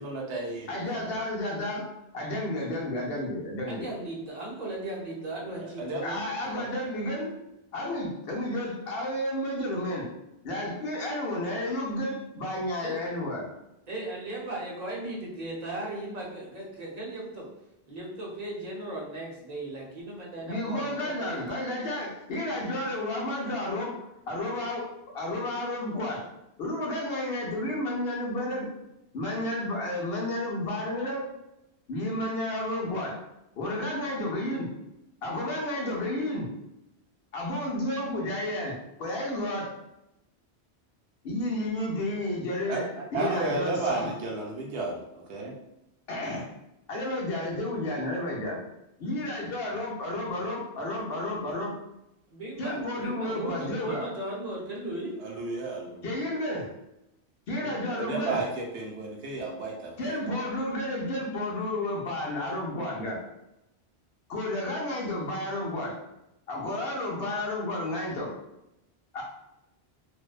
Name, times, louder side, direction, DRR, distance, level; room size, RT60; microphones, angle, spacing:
voice 1, 0.0-1.2 5.6-6.0 6.6-6.7 42.7-45.5 55.2-56.1 57.6-60.4, right 3 dB, 85° right, -1 dB, 0.9 m, -33 dB
voice 2, 0.7-3.9 6.0-7.4 7.7-10.1 10.4-13.5 20.5-26.3 26.6-28.7 29.1-31.3 31.9-33.2 33.6-34.7 35.2-36.5 37.3-39.7 41.2-42.8 43.1-44.1 46.1-46.4 46.9-48.6 49.0-51.8 52.6-54.1 56.0-56.7 57.5-58.4 60.0-63.2 64.3-66.0 66.5-68.3 69.1-69.2, left 1 dB, 65° left, -2 dB, 0.8 m, -31 dB
voice 3, 3.7-6.3 12.8-13.0 13.9-17.5 17.9-21.5 52.3-55.1, right 2 dB, 45° right, -5 dB, 0.7 m, -37 dB
2.5 x 2.1 x 2.3 m, 0.88 s
omnidirectional pair, 1.1 m